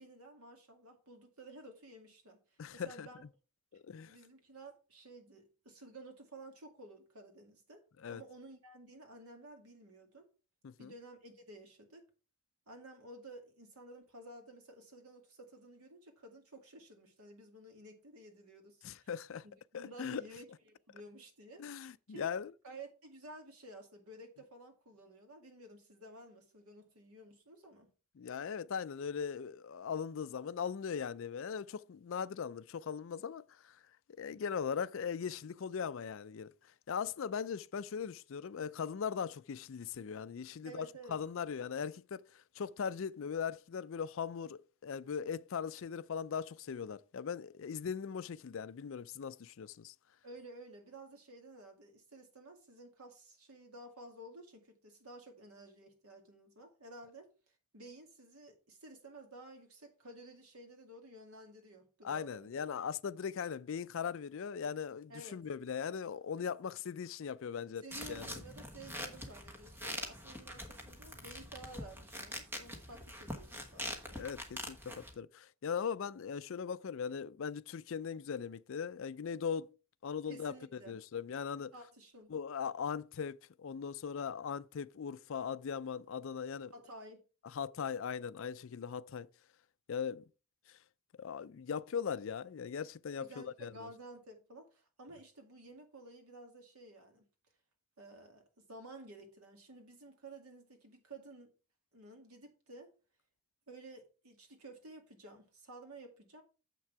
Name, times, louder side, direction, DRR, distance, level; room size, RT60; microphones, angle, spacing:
voice 1, 0.0-2.4 2.7-3.2 4.0-7.8 8.1-10.3 10.8-12.0 12.7-19.1 19.4-21.6 22.1-22.3 22.6-27.9 40.6-41.2 50.2-62.6 65.1-65.4 67.8-74.2 80.3-81.0 81.7-82.3 86.7-87.2 93.2-97.2 98.0-101.5 101.9-102.9 103.7-106.4, right 2 dB, 80° right, 2.2 m, -53 dB
voice 2, 2.6-3.1 3.7-4.2 8.0-8.2 10.6-10.9 18.8-19.4 19.7-20.2 21.6-22.5 28.2-33.8 34.2-36.5 36.9-49.9 62.0-68.4 74.1-79.7 80.0-81.7 82.3-86.7 87.4-89.3 89.9-90.2 91.2-93.9, left 7 dB, 60° left, 0.4 m, -39 dB
sound 1, 67.9-75.1, equal, 10° right, 1.2 m, -44 dB
7.5 x 6.1 x 4.5 m
head